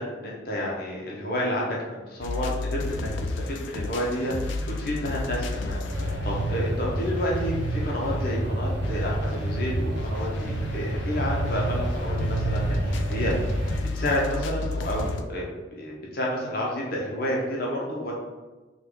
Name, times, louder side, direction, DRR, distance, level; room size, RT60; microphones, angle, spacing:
voice 1, 0.0-13.3 13.9-15.4 15.8-18.1, equal, 50° left, -3 dB, 0.8 m, -30 dB
sound 1, 2.2-8.4 8.8-15.2, left 3 dB, 85° left, 0.3 m, -33 dB
sound 2, 5.9-13.8, right 1 dB, 75° right, 0.6 m, -28 dB
3.7 x 2.3 x 3.1 m, 1.2 s
head